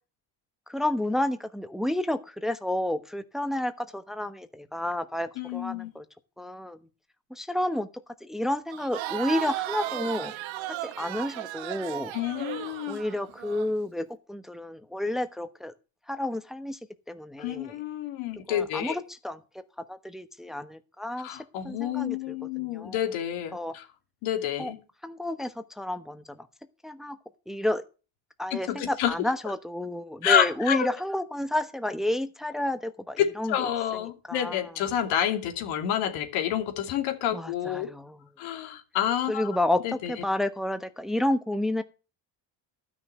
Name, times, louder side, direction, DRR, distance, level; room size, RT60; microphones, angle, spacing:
voice 1, 0.7-6.0 6.4-6.8 7.3-10.4 10.7-12.1 12.9-15.7 16.1-16.8 17.1-17.8 18.5-23.0 23.5-23.8 24.6-24.7 25.0-26.5 26.8-27.2 27.5-27.8 28.4-34.6 37.3-38.3 39.3-41.8, left 1 dB, ahead, 10 dB, 1.1 m, -31 dB
voice 2, 5.4-5.9 12.1-13.0 17.4-18.9 21.2-23.8 24.2-24.8 28.5-29.1 30.2-30.9 33.2-37.9 38.4-39.5 39.8-40.1, left 10 dB, 85° left, 6 dB, 2.7 m, -28 dB
Crowd, 8.7-13.7, right 15 dB, 75° right, 1.2 m, -35 dB
12.5 x 6.3 x 7.9 m, 0.34 s
cardioid pair, 90°, 46 cm